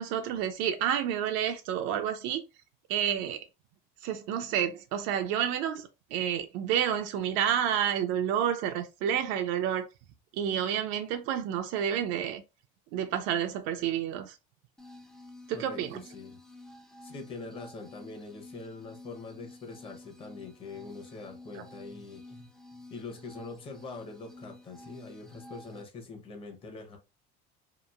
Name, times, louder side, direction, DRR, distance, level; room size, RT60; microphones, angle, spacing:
voice 1, 0.0-2.4 2.9-3.4 4.0-9.9 10.3-12.4 12.9-14.4 15.5-16.0 21.6-21.7, right 9 dB, 70° right, 0.4 m, -29 dB
sound 1, 14.8-25.8, left 2 dB, ahead, 0.4 m, -51 dB
voice 2, 15.5-16.4 17.0-22.5 22.9-27.0, left 3 dB, 25° left, 0.8 m, -44 dB
2.9 x 2.5 x 2.3 m
cardioid pair, 140°, 21 cm